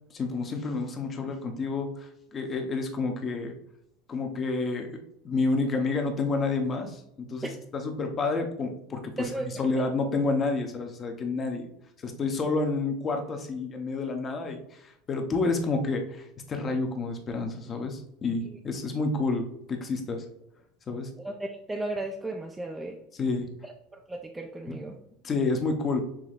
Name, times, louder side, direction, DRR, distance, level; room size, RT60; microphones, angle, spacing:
voice 1, 0.1-3.5 4.1-4.9 5.2-11.7 12.0-20.3 20.9-21.1 23.1-23.5 24.7-24.8 25.2-26.0, left 3 dB, 30° left, 4 dB, 0.8 m, -29 dB
voice 2, 21.2-23.0 24.1-24.9, right 2 dB, 10° right, 1 dB, 0.5 m, -34 dB
5.9 x 3.0 x 2.5 m, 0.76 s
supercardioid pair, 120°, 0 cm